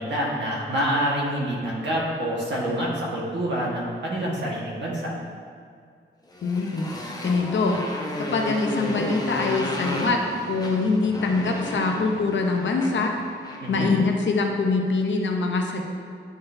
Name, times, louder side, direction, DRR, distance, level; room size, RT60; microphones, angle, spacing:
voice 1, 0.0-5.1 13.6-13.9, equal, 60° right, -5 dB, 1.4 m, -27 dB
Motorcycle, 6.3-13.7, left 1 dB, 20° left, 0.6 m, -33 dB
voice 2, 6.4-6.9 7.2-7.8 8.2-10.2 10.5-13.1 13.7-15.8, left 3 dB, 65° left, 2 dB, 0.6 m, -24 dB
9.4 x 3.9 x 2.6 m, 2.1 s
wide cardioid pair, 160°, 21 cm